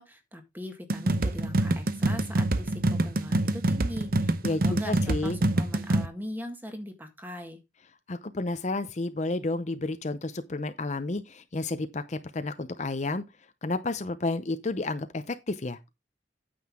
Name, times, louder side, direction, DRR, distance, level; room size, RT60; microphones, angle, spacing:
voice 1, 0.0-7.6, equal, 10° right, 1.8 m, -40 dB
sound 1, 0.9-6.1, right 1 dB, 50° right, 0.8 m, -26 dB
voice 2, 4.4-5.4 8.1-13.2 13.6-15.8, left 2 dB, 40° left, 0.6 m, -31 dB
9.4 x 7.9 x 3.6 m
head